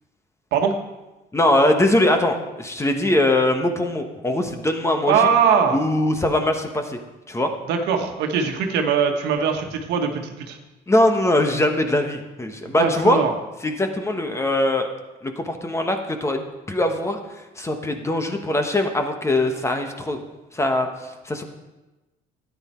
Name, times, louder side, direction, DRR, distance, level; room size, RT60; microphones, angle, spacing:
voice 1, 1.3-5.3 5.7-7.0 7.3-7.5 10.9-13.2 13.6-14.9 15.2-17.2 17.6-20.2 20.5-20.9 21.2-21.4, left 1 dB, 15° left, 6 dB, 1.2 m, -21 dB
voice 2, 5.1-5.8 7.7-10.6 12.8-13.3, right 6 dB, 85° right, 4 dB, 1.4 m, -21 dB
13.0 x 9.6 x 4.4 m, 1.1 s
cardioid pair, 110°, 17 cm